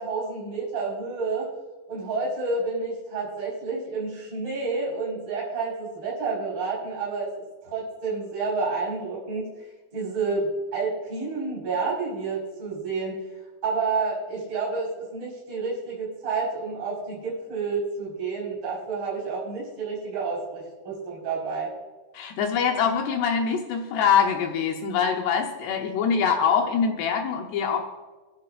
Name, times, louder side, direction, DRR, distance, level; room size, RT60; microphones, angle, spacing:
voice 1, 0.0-1.5 1.9-7.3 7.6-9.5 9.9-13.2 13.6-21.7, right 4 dB, 25° right, -5 dB, 5.1 m, -29 dB
voice 2, 22.1-27.8, left 7 dB, 75° left, 3 dB, 2.5 m, -24 dB
24.5 x 11.5 x 2.5 m, 1.2 s
omnidirectional pair, 5.9 m